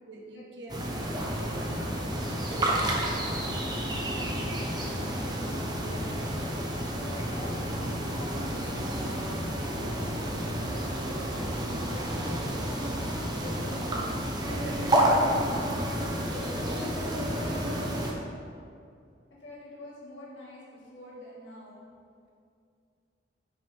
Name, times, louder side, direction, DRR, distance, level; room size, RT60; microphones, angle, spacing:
voice 1, 0.1-0.8 1.4-1.9 13.1-13.4 13.6-14.0 14.6-15.1 17.4-17.9, right 2 dB, 70° right, 1 dB, 1.2 m, -47 dB
sound 1, 0.7-18.1, right 1 dB, 20° right, 1.1 m, -30 dB
voice 2, 1.5-6.4 6.8-14.2 14.8-17.1 19.4-21.8, left 1 dB, 90° left, -7 dB, 2.1 m, -46 dB
10.5 x 6.5 x 3.6 m, 2.3 s
head